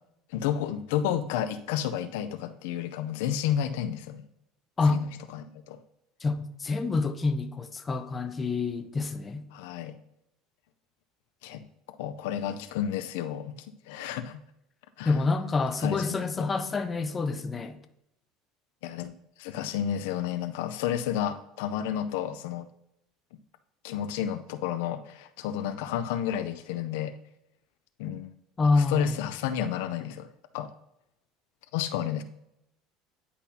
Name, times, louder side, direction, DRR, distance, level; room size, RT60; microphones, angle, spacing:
voice 1, 0.3-4.2 4.9-5.8 9.5-9.9 11.4-11.6 12.0-14.4 15.0-15.2 15.8-16.5 18.8-19.1 19.4-22.7 23.8-27.1 28.0-28.3 28.7-30.3 30.5-30.7 31.7-32.2, left 10 dB, 85° left, 0.4 m, -31 dB
voice 2, 6.2-9.4 15.0-17.8 28.6-29.1, left 3 dB, 25° left, 0.6 m, -27 dB
9.9 x 4.1 x 2.7 m
supercardioid pair, 105°, 0 cm